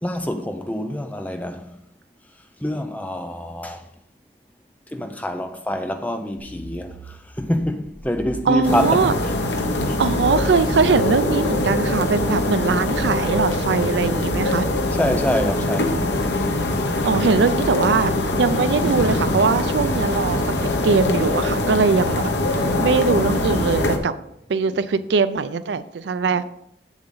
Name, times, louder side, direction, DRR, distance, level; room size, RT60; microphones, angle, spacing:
voice 1, 0.0-1.8 2.6-3.8 4.9-9.1 9.9-10.0 15.0-16.0 22.7-22.9 24.7-24.8, left 1 dB, 10° left, 0.6 m, -26 dB
sound 1, 6.4-22.4, equal, 50° right, 1.2 m, -40 dB
voice 2, 8.5-9.1 10.0-14.7 17.0-22.3 22.8-24.1 24.5-26.5, right 4 dB, 80° right, 0.4 m, -21 dB
sound 2, 8.6-24.0, left 2 dB, 80° left, 1.0 m, -23 dB
7.8 x 7.2 x 3.8 m
head